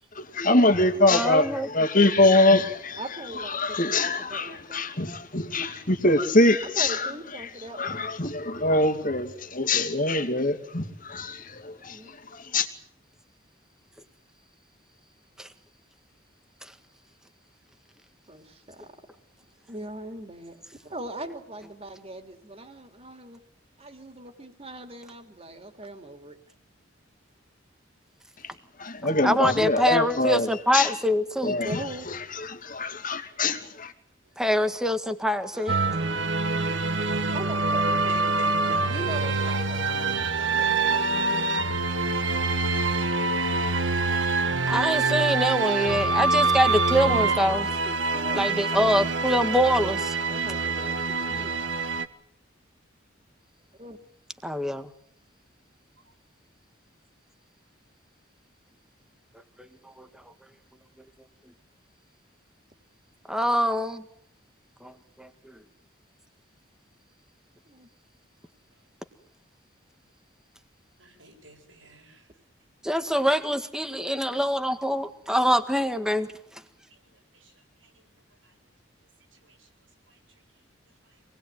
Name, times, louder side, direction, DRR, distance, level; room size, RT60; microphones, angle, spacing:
voice 1, 0.1-3.0 3.3-7.1 7.4-12.7 28.4-28.5 28.8-30.5 30.7-30.9 31.4-33.9, left 2 dB, 45° left, 2.5 m, -24 dB
voice 2, 1.1-1.7 15.4-15.5 29.2-31.6 34.4-35.8 44.7-47.7 48.3-50.2 54.4-54.9 59.6-59.7 60.0-60.1 63.3-64.0 64.8-64.9 65.2-65.5 72.8-76.3, equal, 5° right, 1.7 m, -24 dB
voice 3, 3.0-3.8 4.3-4.8 6.8-7.9 11.9-12.1 18.3-18.9 19.7-20.6 20.8-23.4 23.8-26.4 31.6-32.1 35.5-38.2 38.9-41.4 47.1-48.4 49.9-51.5 53.8-54.0 67.7-67.9, right 1 dB, 30° right, 3.1 m, -40 dB
sound 1, 35.7-52.0, right 3 dB, 70° right, 1.7 m, -25 dB
voice 4, 38.0-40.6 56.0-56.1 68.7-68.8 71.0-72.3 76.9-78.1 78.4-78.6 79.3-79.7 80.1-80.6 81.0-81.2, right 2 dB, 90° right, 8.0 m, -47 dB
27.0 x 20.0 x 9.3 m
head